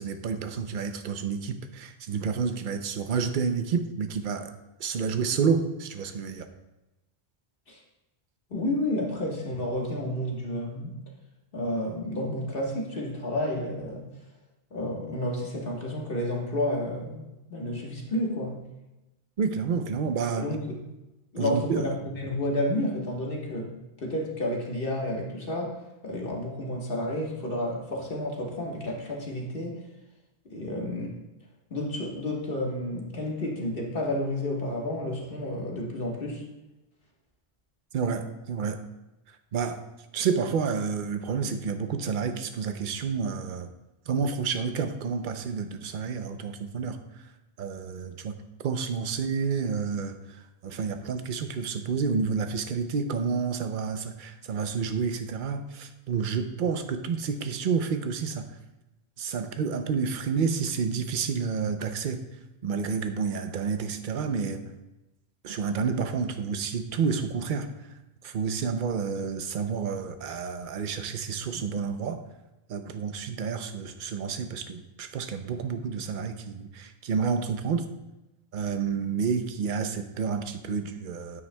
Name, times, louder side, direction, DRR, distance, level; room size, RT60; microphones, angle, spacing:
voice 1, 0.0-4.5 4.8-6.5 19.4-20.5 21.4-21.9 37.9-38.8 39.5-39.8 40.1-43.7 44.1-47.0 47.6-48.4 48.6-50.2 50.6-58.5 59.2-62.2 62.6-64.6 65.4-67.7 68.2-72.2 72.7-77.9 78.5-81.4, right 5 dB, 60° right, 8 dB, 0.8 m, -29 dB
voice 2, 8.5-10.9 11.5-14.1 14.7-17.2 17.5-18.6 20.4-20.8 21.3-23.7 24.0-25.8 26.0-29.8 30.4-31.1 31.7-36.4, left 1 dB, 60° left, -1 dB, 1.6 m, -31 dB
9.6 x 8.8 x 2.2 m, 1.0 s
omnidirectional pair, 1.0 m